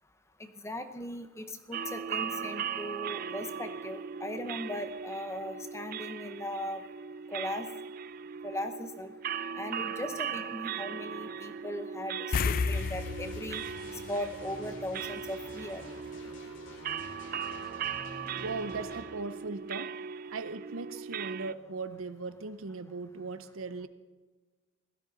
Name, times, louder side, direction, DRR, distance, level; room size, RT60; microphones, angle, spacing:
voice 1, 0.4-6.8 7.3-7.7 8.4-9.1 9.6-13.6 14.1-15.8, left 1 dB, 15° left, 8 dB, 0.7 m, -38 dB
sound 1, 1.7-21.5, right 7 dB, 40° right, 0.3 m, -39 dB
sound 2, 12.3-15.1 15.4-15.6 18.5-18.6 18.9-19.0, left 5 dB, 40° left, 0.3 m, -33 dB
sound 3, 12.7-19.0, equal, 60° left, 2.8 m, -49 dB
voice 2, 18.4-20.0 20.3-23.9, right 3 dB, 75° right, 12 dB, 0.7 m, -38 dB
16.5 x 13.0 x 4.0 m, 1.3 s
head